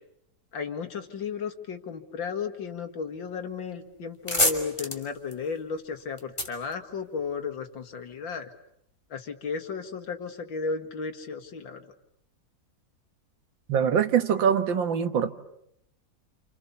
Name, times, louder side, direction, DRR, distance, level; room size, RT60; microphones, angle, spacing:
voice 1, 0.5-8.5 9.1-11.8, left 5 dB, 80° left, 2.6 m, -34 dB
sound 1, 3.5-3.7 4.0-7.6, left 1 dB, 15° left, 2.8 m, -30 dB
voice 2, 13.7-15.3, right 7 dB, 80° right, 2.1 m, -23 dB
29.5 x 28.0 x 7.0 m
omnidirectional pair, 2.0 m